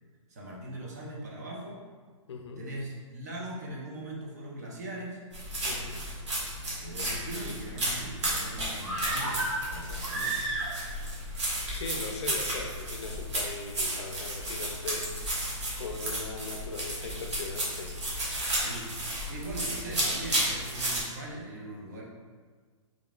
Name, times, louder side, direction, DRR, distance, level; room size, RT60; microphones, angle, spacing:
voice 1, 0.3-1.8 2.6-5.2 6.7-10.4 18.6-18.9 19.3-22.0, right 1 dB, 30° right, -3 dB, 0.5 m, -40 dB
voice 2, 2.3-2.6 5.6-6.0 11.6-15.1 15.8-18.0, left 4 dB, 55° left, 3 dB, 0.5 m, -39 dB
sound 1, 5.3-21.0, right 1 dB, 60° right, 1.3 m, -33 dB
sound 2, 8.8-11.1 11.3-11.4, right 2 dB, 75° right, 1.0 m, -32 dB
3.7 x 3.5 x 2.4 m, 1.5 s
hypercardioid pair, 180°, 17 cm